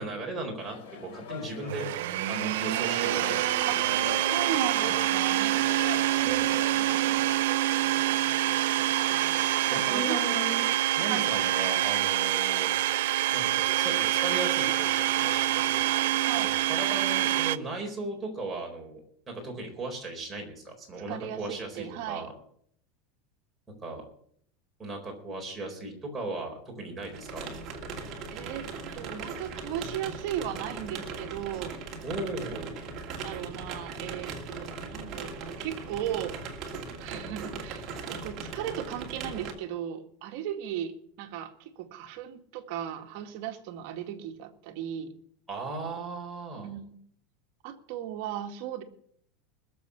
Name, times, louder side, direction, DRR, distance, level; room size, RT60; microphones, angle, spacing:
voice 1, 0.0-1.9 2.3-3.7 6.1-6.4 9.7-10.7 11.0-12.7 13.3-15.8 16.3-22.3 23.8-24.0 24.8-27.5 32.0-32.7 45.5-46.7, right 2 dB, 10° right, -1 dB, 4.3 m, -37 dB
sound 1, 0.6-7.4, left 6 dB, 70° left, 3.8 m, -42 dB
Domestic sounds home sounds, 1.7-17.6, right 14 dB, 75° right, 0.6 m, -26 dB
voice 2, 4.3-5.7 6.2-7.3 8.6-10.2 11.1-11.4 16.3-16.5 21.1-22.3 28.3-28.7 28.9-31.8 33.2-36.4 37.0-45.1 46.5-47.0 47.6-48.8, right 10 dB, 50° right, 4 dB, 1.9 m, -36 dB
sound 2, 27.0-39.5, right 4 dB, 30° right, 2.5 m, -39 dB
20.5 x 7.2 x 7.1 m, 0.64 s
supercardioid pair, 170°, 0 cm